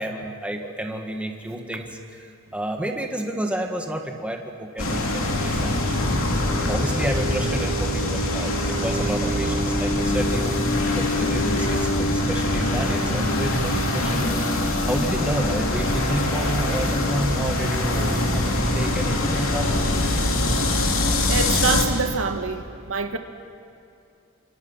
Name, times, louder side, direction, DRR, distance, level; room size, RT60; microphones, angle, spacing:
voice 1, 0.0-6.3 6.7-10.7 10.9-19.9, right 1 dB, 5° right, 2 dB, 1.8 m, -30 dB
sound 1, 4.8-21.9, left 1 dB, 70° left, 3.0 m, -23 dB
voice 2, 21.3-23.2, right 4 dB, 70° right, 6 dB, 1.5 m, -25 dB
29.0 x 26.0 x 5.7 m, 2.5 s
head